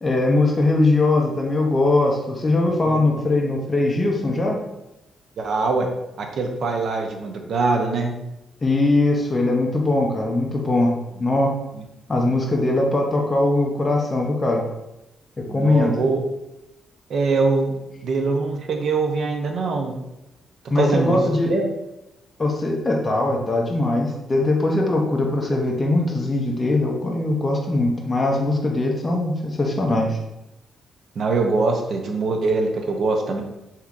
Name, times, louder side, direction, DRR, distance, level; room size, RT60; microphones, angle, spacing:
voice 1, 0.0-4.6 8.6-11.5 12.1-14.6 15.4-16.0 20.7-21.5 22.4-30.2, left 2 dB, 20° left, 0 dB, 0.4 m, -21 dB
voice 2, 5.4-5.9 6.2-8.1 12.3-12.4 15.5-16.2 17.1-19.9 20.8-21.2 21.5-21.7 31.2-33.4, right 3 dB, 55° right, 3 dB, 0.5 m, -23 dB
3.6 x 2.8 x 2.4 m, 0.94 s
cardioid pair, 155°, 0 cm